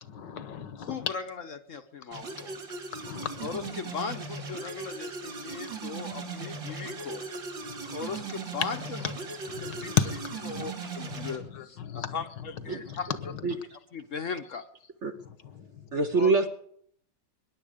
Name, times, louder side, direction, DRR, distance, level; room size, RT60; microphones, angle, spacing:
voice 1, 0.1-1.1 2.9-3.7 8.2-8.3 9.0-9.1 9.5-10.7 11.1-13.6, left 8 dB, 70° left, 14 dB, 1.6 m, -34 dB
voice 2, 0.8-2.5 3.0-3.1 3.4-7.2 7.6-9.1 9.6-10.0 10.4-14.6 16.2-16.3, left 5 dB, 55° left, 9 dB, 1.0 m, -38 dB
sound 1, 2.1-11.4, right 4 dB, 75° right, 3.0 m, -38 dB
voice 3, 15.9-16.5, right 3 dB, 50° right, 8 dB, 1.0 m, -24 dB
23.0 x 10.5 x 5.1 m, 0.64 s
omnidirectional pair, 2.0 m